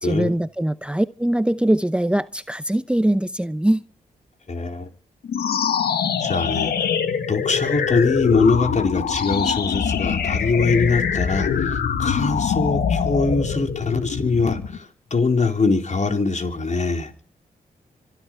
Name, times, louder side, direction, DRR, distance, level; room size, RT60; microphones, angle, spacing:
voice 1, 0.0-3.8, right 1 dB, 5° right, 0.8 m, -22 dB
voice 2, 4.5-4.9 6.2-6.9 7.3-17.1, left 4 dB, 50° left, 3.8 m, -22 dB
sound 1, 5.2-14.8, left 7 dB, 85° left, 1.9 m, -24 dB
26.0 x 12.0 x 4.6 m
cardioid pair, 55°, 16 cm